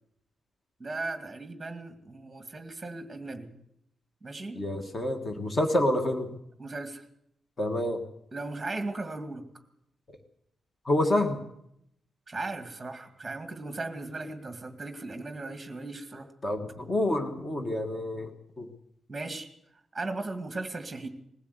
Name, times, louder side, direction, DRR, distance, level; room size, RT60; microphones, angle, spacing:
voice 1, 0.8-3.5 4.2-4.6 6.6-7.0 8.3-9.4 12.3-16.3 19.1-19.5 19.9-21.1, right 2 dB, 10° right, 7 dB, 2.1 m, -37 dB
voice 2, 4.5-6.3 7.6-8.0 10.9-11.4 16.4-18.3 18.6-18.7, left 1 dB, 25° left, 5 dB, 1.6 m, -27 dB
20.5 x 15.5 x 8.1 m, 0.77 s
wide cardioid pair, 175°, 0 cm